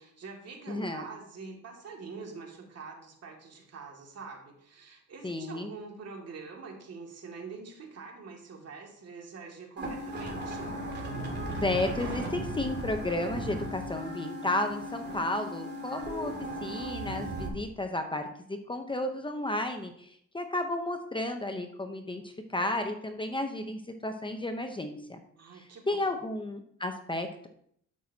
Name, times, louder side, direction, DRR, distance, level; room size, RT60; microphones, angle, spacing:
voice 1, 0.0-10.7 25.4-26.2, right 4 dB, 55° right, 0 dB, 2.4 m, -45 dB
voice 2, 0.7-1.0 5.2-5.7 11.6-16.3 16.6-25.2 25.6-27.5, left 1 dB, 15° left, 6 dB, 0.9 m, -33 dB
sound 1, 9.8-17.5, equal, 35° right, 2.8 m, -36 dB
12.0 x 6.0 x 2.9 m, 0.68 s
cardioid pair, 90°, 30 cm